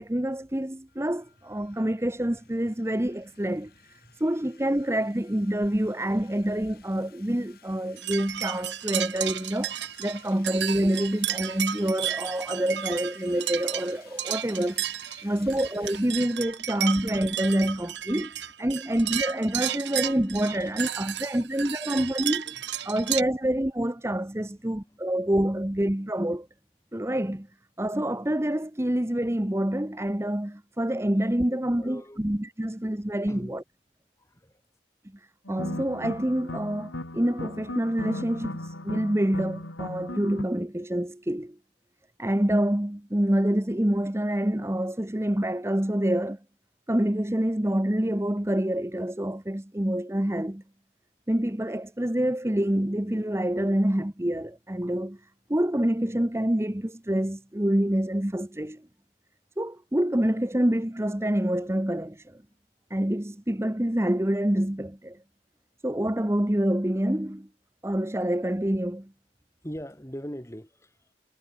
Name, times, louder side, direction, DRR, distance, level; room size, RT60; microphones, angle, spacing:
voice 1, 0.0-3.7 4.2-14.8 15.2-22.5 22.8-26.5 26.9-27.5 27.8-33.6 35.5-41.6 42.2-46.4 46.9-50.6 51.3-55.2 55.5-58.8 59.6-62.4 62.9-65.2 65.8-67.5 67.8-69.1, right 1 dB, 15° right, 0.9 m, -27 dB
sound 1, 0.9-17.7, left 8 dB, 50° left, 6.0 m, -57 dB
sound 2, 8.0-23.2, right 11 dB, 65° right, 1.3 m, -33 dB
voice 2, 15.2-15.6 20.5-20.8 21.2-21.3 22.5-22.9 24.6-25.0 31.8-32.2 33.3-33.6 34.2-34.6 69.6-71.1, equal, 15° left, 3.2 m, -42 dB
sound 3, 35.5-40.4, left 1 dB, 85° left, 3.3 m, -37 dB
head